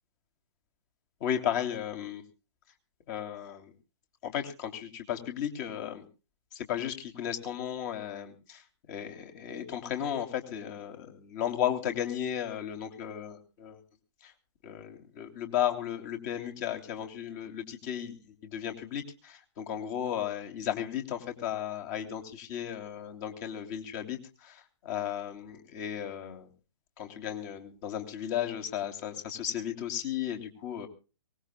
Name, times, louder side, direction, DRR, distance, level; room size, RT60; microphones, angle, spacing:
voice 1, 1.2-2.2 3.1-3.7 4.2-6.0 6.5-8.6 8.9-13.8 14.2-14.3 14.6-26.5 27.0-30.9, left 10 dB, 35° left, 5 dB, 3.2 m, -35 dB
23.5 x 19.5 x 2.3 m, 0.34 s
figure-of-eight pair, 130°, 16 cm